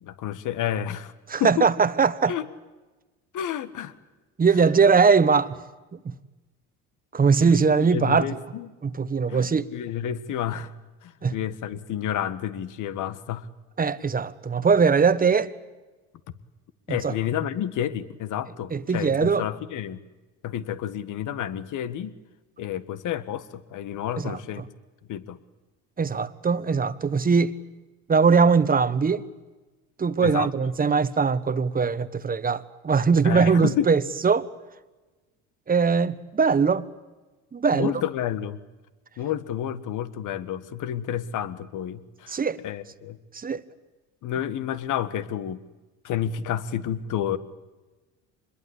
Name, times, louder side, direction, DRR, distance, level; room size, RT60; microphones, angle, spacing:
voice 1, 0.0-1.1 1.4-1.7 2.3-2.5 3.3-3.9 7.4-7.6 7.9-8.7 9.3-10.7 11.0-13.5 16.9-20.0 20.4-22.1 22.6-24.7 25.1-25.4 30.2-30.5 33.2-33.9 37.7-38.6 39.2-42.4 42.6-43.2 44.2-45.6 46.0-47.4, left 10 dB, 60° left, 1.7 m, -30 dB
voice 2, 1.3-2.4 4.4-5.6 6.0-6.1 7.1-8.4 8.8-9.7 11.2-11.3 13.8-15.5 16.9-17.1 18.7-19.4 24.2-24.4 26.0-27.6 28.1-29.2 30.0-34.5 35.7-36.9 37.5-37.9 42.3-42.6 43.3-43.6, right 5 dB, 25° right, 1.3 m, -21 dB
25.5 x 21.5 x 8.4 m
supercardioid pair, 85°, 35 cm